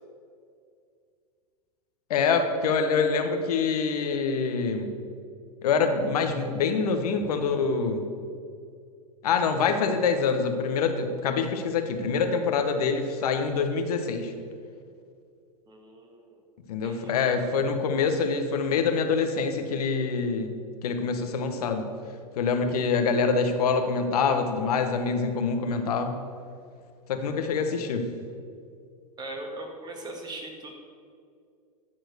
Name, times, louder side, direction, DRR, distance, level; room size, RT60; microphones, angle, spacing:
voice 1, 2.1-4.9 5.6-8.0 9.2-14.3 16.7-20.5 20.8-21.8 22.4-26.2 27.1-28.1, left 5 dB, 70° left, 6 dB, 1.2 m, -25 dB
voice 2, 15.7-16.4 16.8-17.1 29.2-30.7, right 2 dB, 20° right, 1 dB, 2.1 m, -39 dB
12.5 x 4.6 x 6.5 m, 2.3 s
hypercardioid pair, 105°, 20 cm